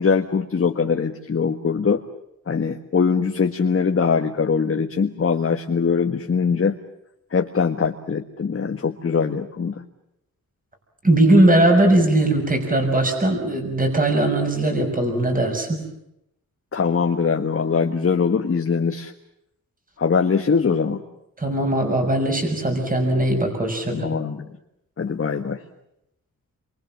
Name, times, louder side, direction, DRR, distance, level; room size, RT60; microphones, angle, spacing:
voice 1, 0.0-2.0 2.5-6.8 7.3-9.7 16.7-19.1 20.0-21.0 23.9-24.4 25.0-25.6, left 5 dB, 40° left, 4 dB, 1.6 m, -22 dB
voice 2, 11.0-15.8 21.4-24.1, right 1 dB, 25° right, 4 dB, 6.2 m, -19 dB
28.5 x 24.5 x 7.4 m, 0.82 s
wide cardioid pair, 155°, 34 cm